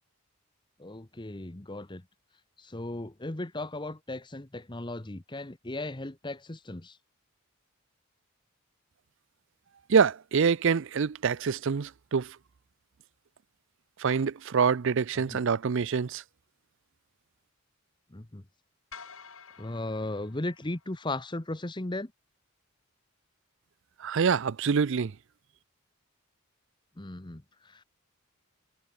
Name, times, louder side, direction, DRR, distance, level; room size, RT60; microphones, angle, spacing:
voice 1, 0.8-2.0 2.6-7.0 15.1-15.4 18.1-18.4 19.6-22.1 27.0-27.8, left 2 dB, 20° left, 1.0 m, -36 dB
voice 2, 9.9-12.4 14.0-16.2 24.0-25.1, right 6 dB, 60° right, 0.5 m, -26 dB
sound 1, 18.9-21.3, left 6 dB, 70° left, 6.1 m, -50 dB
head